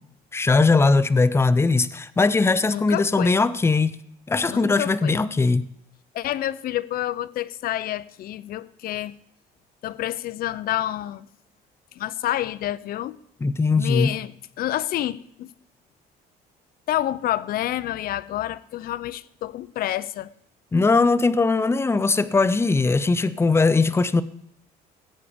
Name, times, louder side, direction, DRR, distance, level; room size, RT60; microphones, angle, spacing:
voice 1, 0.3-4.0 4.3-5.6 13.4-14.1 20.7-24.2, left 3 dB, 15° left, 0.6 m, -20 dB
voice 2, 2.6-3.4 4.5-5.2 6.1-9.1 9.8-11.3 12.0-13.2 13.7-15.5 16.9-20.3, left 13 dB, 60° left, 0.6 m, -28 dB
19.0 x 8.4 x 5.1 m
cardioid pair, 110°, 17 cm